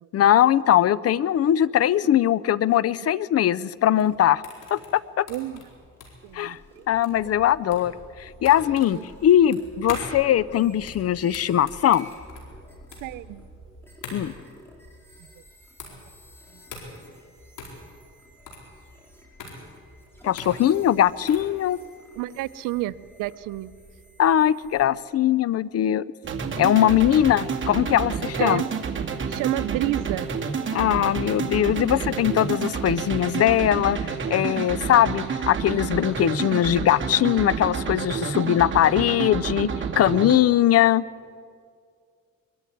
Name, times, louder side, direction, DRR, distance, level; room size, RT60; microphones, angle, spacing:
voice 1, 0.1-4.4 4.7-5.3 6.3-6.6 6.9-7.9 8.2-12.1 14.1-14.3 20.2-21.8 24.2-26.0 26.6-28.6 30.7-34.0 34.3-39.7 40.0-41.0, left 11 dB, 50° left, 20 dB, 0.6 m, -21 dB
sound 1, 3.8-21.5, left 4 dB, 80° left, 4.4 m, -42 dB
voice 2, 5.3-5.6 6.2-6.8 8.9-9.0 13.0-13.5 15.2-15.4 15.9-16.0 16.5-16.6 22.2-23.7 25.9-26.0 28.4-28.7 29.3-30.3, right 16 dB, 85° right, 16 dB, 0.7 m, -30 dB
sound 2, 5.4-24.9, equal, 5° left, 4.8 m, -50 dB
sound 3, 26.2-40.4, right 6 dB, 40° right, 2.2 m, -29 dB
21.5 x 14.0 x 9.3 m, 2.1 s
cardioid pair, 95°, 31 cm